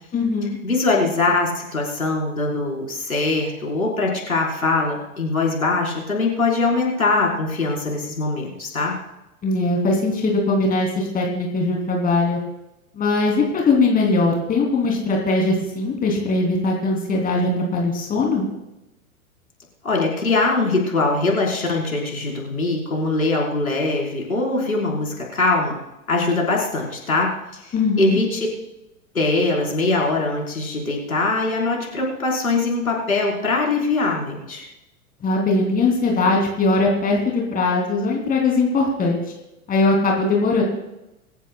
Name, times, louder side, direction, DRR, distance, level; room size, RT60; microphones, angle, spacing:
voice 1, 0.1-0.6 9.4-12.4 13.0-18.5 27.7-28.2 35.2-37.2 37.5-39.2 39.7-40.6, left 3 dB, 20° left, 0 dB, 3.4 m, -20 dB
voice 2, 0.6-8.9 19.8-25.7 26.1-28.5 29.1-34.6, left 3 dB, 75° left, -2 dB, 5.0 m, -22 dB
26.0 x 14.5 x 2.4 m, 0.92 s
figure-of-eight pair, 95°, 42 cm